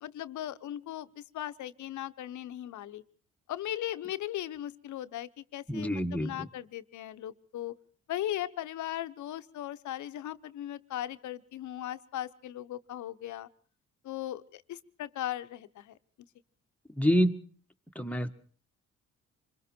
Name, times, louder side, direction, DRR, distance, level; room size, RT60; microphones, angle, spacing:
voice 1, 0.0-3.0 3.5-7.8 8.1-13.5 14.0-16.0, left 12 dB, 75° left, 11 dB, 1.0 m, -38 dB
voice 2, 5.7-6.5 17.0-17.3 17.9-18.3, equal, 5° left, 6 dB, 1.6 m, -27 dB
26.5 x 22.0 x 4.5 m, 0.43 s
cardioid pair, 90°, 30 cm